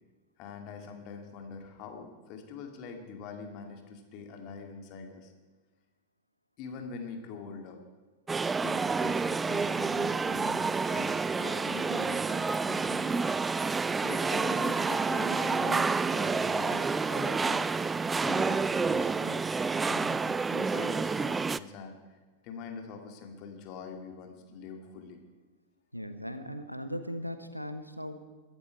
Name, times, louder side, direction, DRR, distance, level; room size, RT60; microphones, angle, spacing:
voice 1, 0.4-5.3 6.6-7.8 8.5-13.3 14.0-17.6 18.1-19.4 19.8-22.2 22.4-25.2, left 5 dB, 40° left, 3 dB, 2.5 m, -43 dB
sound 1, 8.3-21.6, right 4 dB, 15° right, 0.4 m, -29 dB
voice 2, 25.9-28.2, equal, 90° right, 10 dB, 1.1 m, -38 dB
22.0 x 11.5 x 4.7 m, 1.3 s
figure-of-eight pair, 90°, 0 cm